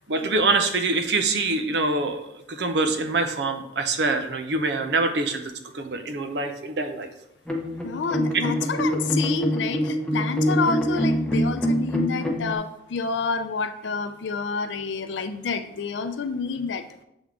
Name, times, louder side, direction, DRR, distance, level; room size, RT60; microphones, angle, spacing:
voice 1, 0.1-5.4 5.7-7.1, right 3 dB, 70° right, 7 dB, 0.6 m, -25 dB
sound 1, 7.5-12.5, equal, 5° left, 0.7 m, -25 dB
voice 2, 7.8-16.8, left 4 dB, 85° left, 8 dB, 0.5 m, -28 dB
7.3 x 3.5 x 3.6 m, 0.82 s
head